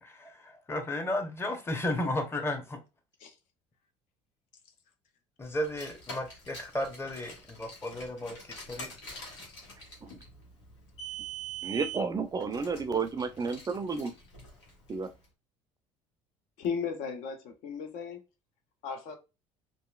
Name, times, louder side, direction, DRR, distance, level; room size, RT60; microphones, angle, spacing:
voice 1, 0.0-2.8 5.4-8.4 8.7-8.9, left 1 dB, 15° left, 0.9 m, -33 dB
Car, 5.6-15.1, right 4 dB, 90° left, 1.0 m, -44 dB
voice 2, 11.6-14.1 14.9-15.1, right 5 dB, 25° right, 0.4 m, -31 dB
voice 3, 16.6-18.2 18.8-19.2, left 6 dB, 65° left, 0.7 m, -35 dB
2.8 x 2.5 x 2.3 m
hypercardioid pair, 70°, 14 cm